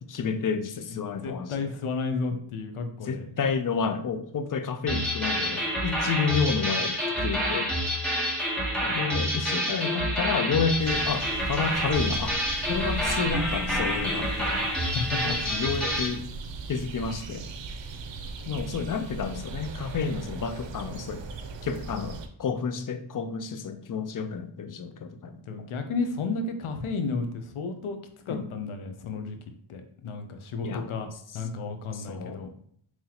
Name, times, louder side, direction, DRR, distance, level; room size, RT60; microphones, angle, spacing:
voice 1, 0.1-1.7 3.0-7.7 8.8-12.4 12.7-14.6 15.2-16.2 16.7-17.5 18.5-21.2 21.6-25.7 28.3-28.5 30.6-30.9 31.3-31.4 31.9-32.4, left 5 dB, 45° left, 9 dB, 0.4 m, -30 dB
voice 2, 0.9-3.3 14.8-15.4 25.5-28.0 28.3-29.4 29.7-31.1 31.3-32.5, left 4 dB, 85° left, 6 dB, 0.7 m, -32 dB
sound 1, 4.9-16.2, equal, ahead, 1.0 m, -28 dB
sound 2, 10.8-22.3, right 3 dB, 65° right, 0.6 m, -38 dB
3.9 x 3.0 x 2.8 m, 0.62 s
wide cardioid pair, 80°, 48 cm